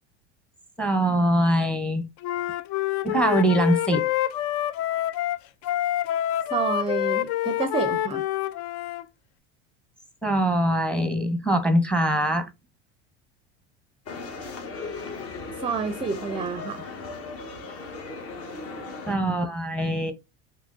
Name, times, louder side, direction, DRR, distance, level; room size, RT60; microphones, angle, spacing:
voice 1, 0.8-2.0 3.0-4.1 10.2-12.5 19.1-20.1, right 1 dB, 5° left, 0.8 m, -23 dB
Wind instrument woodwind instrument, 2.2-9.0, left 13 dB, 60° left, 0.5 m, -27 dB
voice 2, 6.5-8.2 15.6-16.9, right 5 dB, 15° right, 0.5 m, -29 dB
sound 1, 14.1-19.2, left 4 dB, 45° left, 1.1 m, -37 dB
3.6 x 2.9 x 2.5 m
hypercardioid pair, 95°, 34 cm